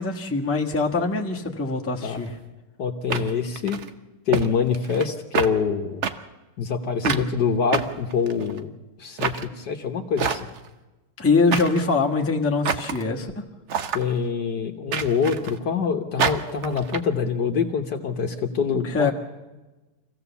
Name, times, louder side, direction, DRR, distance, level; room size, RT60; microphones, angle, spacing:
voice 1, 0.0-2.3 7.0-7.3 11.2-13.4 18.8-19.1, left 4 dB, 10° left, 0 dB, 1.1 m, -23 dB
sound 1, 2.2-2.3 3.1-3.9 4.3-4.5 4.7-5.1 5.3-5.5 6.0-6.1 7.0-7.3 7.7-8.6 9.2-9.5 10.2-10.7 11.5-11.9 12.6-13.0 13.7-14.0 14.9-15.6 16.2-17.0, right 6 dB, 85° right, 0.6 m, -27 dB
voice 2, 2.8-3.8 4.3-6.0 6.6-8.7 9.0-10.5 13.9-19.1, left 6 dB, 55° left, 5 dB, 1.5 m, -25 dB
24.5 x 16.0 x 7.0 m, 1.1 s
omnidirectional pair, 2.4 m